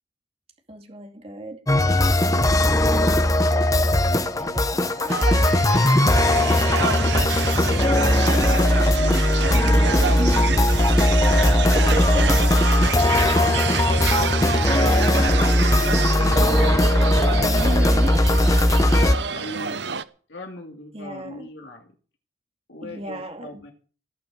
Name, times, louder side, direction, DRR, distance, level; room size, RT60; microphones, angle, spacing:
voice 1, 0.7-1.6 2.2-5.3 6.4-8.5 10.2-10.5 11.7-12.5 13.2-13.9 17.3-18.2 20.9-21.5 22.8-23.6, right 1 dB, 35° right, 2.3 m, -35 dB
sound 1, 1.7-19.1, left 1 dB, 20° left, 0.9 m, -19 dB
sound 2, 5.1-20.0, right 6 dB, 65° right, 0.9 m, -28 dB
voice 2, 6.8-9.1 9.4-10.3 10.7-10.8 11.3-12.5 13.0-14.4 14.8-18.1 18.7-19.9 20.3-21.9 22.7-23.7, left 2 dB, 80° left, 2.6 m, -37 dB
18.5 x 6.3 x 8.8 m
head